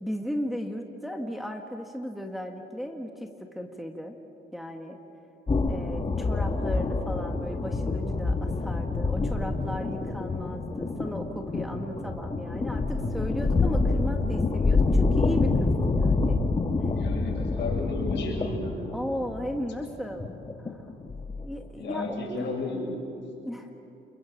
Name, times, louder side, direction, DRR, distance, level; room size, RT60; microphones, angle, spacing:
voice 1, 0.0-4.2 4.5-5.0 5.7-16.4 18.9-20.3 20.6-20.9 21.4-22.5 23.4-23.7, equal, ahead, 3 dB, 1.8 m, -35 dB
sound 1, 5.5-21.6, left 3 dB, 25° left, 2.0 m, -27 dB
voice 2, 16.9-18.8 21.8-22.9, left 2 dB, 65° left, -1 dB, 7.3 m, -33 dB
28.5 x 22.5 x 7.4 m, 2.8 s
cardioid pair, 90°, 20 cm